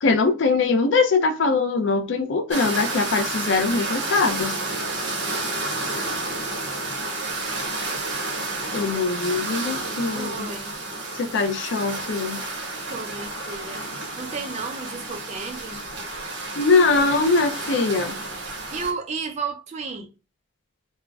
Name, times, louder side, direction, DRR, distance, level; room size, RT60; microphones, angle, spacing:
voice 1, 0.0-4.6 8.7-10.5 11.2-12.4 16.6-18.2, left 4 dB, 70° left, 0.4 m, -22 dB
sound 1, 2.5-18.9, right 2 dB, 70° right, 1.1 m, -30 dB
voice 2, 10.1-10.8 12.9-13.9 14.2-15.8 18.7-20.1, right 5 dB, 35° right, 0.3 m, -33 dB
3.6 x 2.1 x 2.2 m
head